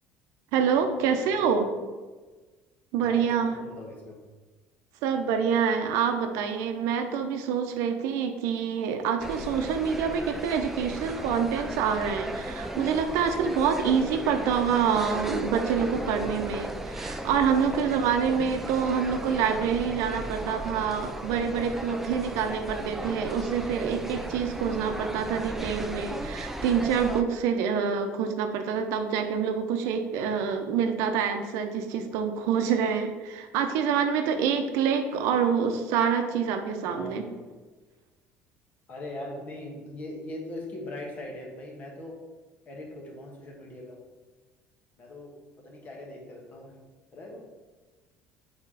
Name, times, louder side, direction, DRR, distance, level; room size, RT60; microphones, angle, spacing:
voice 1, 0.5-1.7 2.9-3.6 5.0-37.2, right 7 dB, 80° right, 6 dB, 0.6 m, -26 dB
voice 2, 1.2-1.5 3.0-4.2 17.7-18.1 36.9-37.5 38.9-42.2 42.7-44.0 45.0-45.3 45.6-46.7 47.1-47.4, left 1 dB, 30° left, -1 dB, 1.3 m, -41 dB
sound 1, 9.2-27.2, right 1 dB, 5° right, 0.3 m, -36 dB
4.7 x 4.2 x 4.9 m, 1.3 s
cardioid pair, 160°, 5 cm